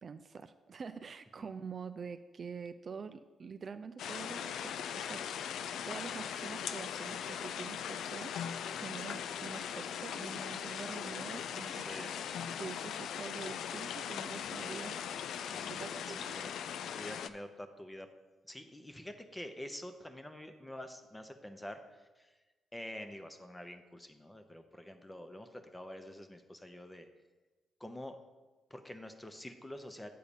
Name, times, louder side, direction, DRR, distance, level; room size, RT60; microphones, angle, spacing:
voice 1, 0.0-5.2 5.8-12.1 12.5-15.0 15.7-16.4, right 5 dB, 45° right, 10 dB, 0.3 m, -46 dB
sound 1, 4.0-17.3, left 8 dB, 80° left, 0.3 m, -40 dB
voice 2, 11.7-12.1 15.4-15.8 16.2-16.5 16.9-18.1 18.5-22.3 22.7-27.1 27.8-28.2 28.7-30.1, left 1 dB, 10° left, 7 dB, 0.8 m, -47 dB
8.4 x 3.9 x 7.0 m, 1.2 s
cardioid pair, 100°, 0 cm